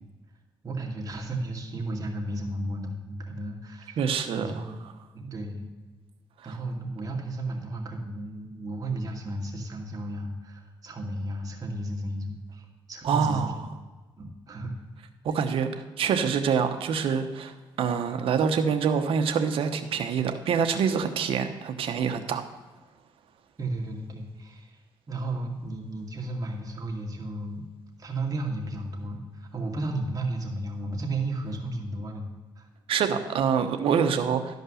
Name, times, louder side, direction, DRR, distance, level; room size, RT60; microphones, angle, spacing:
voice 1, 0.6-4.0 4.3-4.8 5.1-5.7 6.4-13.5 14.2-14.7 23.6-24.8 25.1-27.6 28.0-32.3 32.6-32.7, right 2 dB, 40° right, 0 dB, 2.3 m, -33 dB
voice 2, 4.0-4.6 13.0-13.6 15.2-22.4 32.9-34.6, right 6 dB, 80° right, 7 dB, 1.0 m, -26 dB
12.5 x 5.4 x 6.4 m, 1.3 s
cardioid pair, 90°, 9 cm